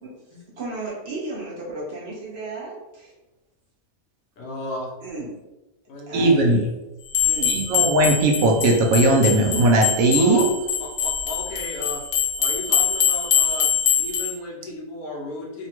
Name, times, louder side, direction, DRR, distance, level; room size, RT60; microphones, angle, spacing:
voice 1, 0.6-3.1 5.0-5.4 6.1-6.3 7.2-7.6, right 2 dB, 50° right, -6 dB, 1.1 m, -34 dB
voice 2, 4.4-4.9 5.9-6.7 10.1-10.5 10.8-12.0 12.4-13.7 14.0-15.7, left 2 dB, 85° left, -2 dB, 1.2 m, -34 dB
voice 3, 6.1-6.6 7.5-10.5, right 2 dB, 75° right, 1 dB, 1.0 m, -18 dB
sound 1, 7.1-14.3, left 9 dB, 65° left, 0.7 m, -23 dB
3.2 x 2.2 x 2.9 m, 1.0 s
omnidirectional pair, 1.6 m